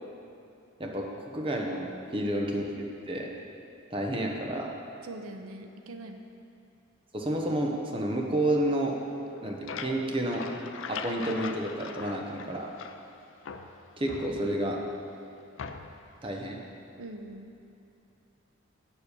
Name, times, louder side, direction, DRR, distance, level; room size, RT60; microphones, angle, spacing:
voice 1, 0.8-2.7 3.1-3.3 3.9-4.7 7.1-9.0 9.4-10.5 10.9-12.7 14.0-14.8 16.2-16.6, right 1 dB, 25° right, 0 dB, 0.9 m, -30 dB
voice 2, 5.0-6.3 17.0-17.5, right 1 dB, 90° right, 5 dB, 0.7 m, -42 dB
sound 1, 9.2-13.1 13.4-14.8 15.6-16.1, left 5 dB, 65° left, 0.5 m, -41 dB
8.3 x 7.2 x 6.8 m, 2.7 s
head